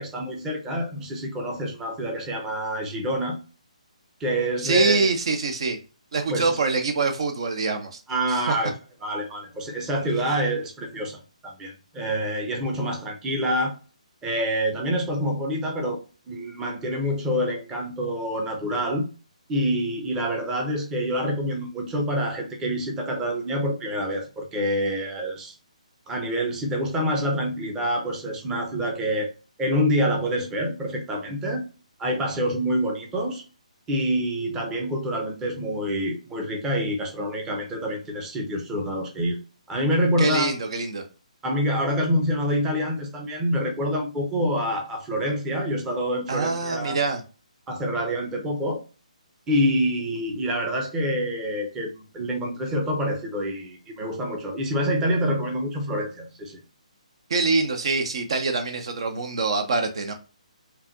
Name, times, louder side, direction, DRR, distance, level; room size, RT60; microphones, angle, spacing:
voice 1, 0.0-3.4 4.2-5.1 6.3-6.6 8.1-8.7 9.0-13.8 14.2-16.0 16.3-19.1 19.5-25.5 26.1-29.3 29.6-31.6 32.0-33.4 33.9-39.4 39.7-40.5 41.4-47.0 47.7-48.8 49.5-56.6, equal, 10° right, 0.8 m, -26 dB
voice 2, 4.6-5.8 6.1-8.0 8.3-8.6 40.2-41.1 46.3-47.2 57.3-60.1, right 3 dB, 50° right, 0.7 m, -24 dB
5.6 x 2.4 x 2.5 m
figure-of-eight pair, 135°, 4 cm